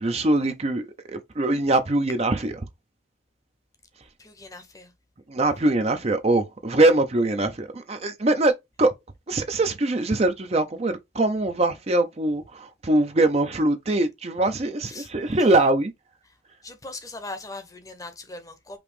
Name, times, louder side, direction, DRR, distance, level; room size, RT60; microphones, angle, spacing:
voice 1, 0.0-2.5 5.3-8.9 9.3-15.9, right 2 dB, 30° right, 0.5 m, -22 dB
voice 2, 4.2-4.9 14.9-15.1 15.4-15.6 16.2-16.3 16.6-18.8, left 2 dB, 20° left, 0.8 m, -40 dB
5.0 x 3.0 x 3.2 m
head